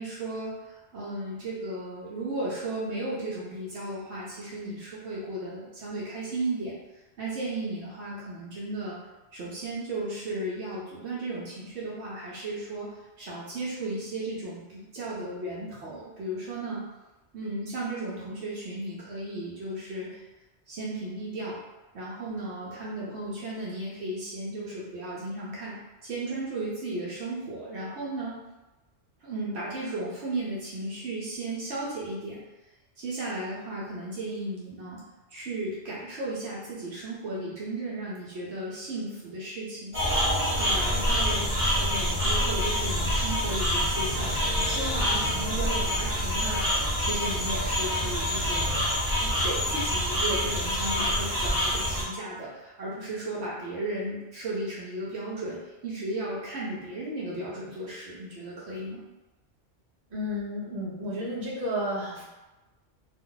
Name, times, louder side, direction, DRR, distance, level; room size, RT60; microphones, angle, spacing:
voice 1, 0.0-6.8 7.2-9.0 9.3-16.8 17.3-20.2 20.7-21.6 21.9-28.4 29.2-32.4 33.0-35.0 35.3-40.0 40.6-48.7 49.2-59.0, right 2 dB, 70° right, -6 dB, 0.9 m, -35 dB
sound 1, 39.9-52.0, equal, 10° right, 0.9 m, -26 dB
voice 2, 60.1-62.2, equal, 40° right, -8 dB, 1.0 m, -32 dB
2.6 x 2.1 x 3.8 m, 1.1 s
omnidirectional pair, 1.2 m